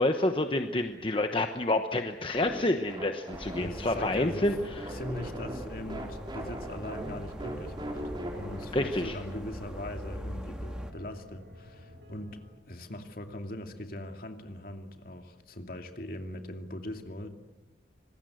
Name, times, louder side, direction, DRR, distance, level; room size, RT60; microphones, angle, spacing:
voice 1, 0.0-4.9 8.7-9.1, left 1 dB, 30° left, 6 dB, 1.1 m, -28 dB
sound 1, 2.3-9.8, right 1 dB, 25° right, 4.2 m, -41 dB
sound 2, 3.3-10.9, equal, 5° right, 2.0 m, -42 dB
voice 2, 3.6-4.6 4.9-8.0 8.3-12.4 12.7-17.3, left 1 dB, 50° left, 5 dB, 2.6 m, -40 dB
sound 3, 4.4-12.5, left 1 dB, 85° right, 5.2 m, -52 dB
26.0 x 20.5 x 8.0 m, 1.1 s
head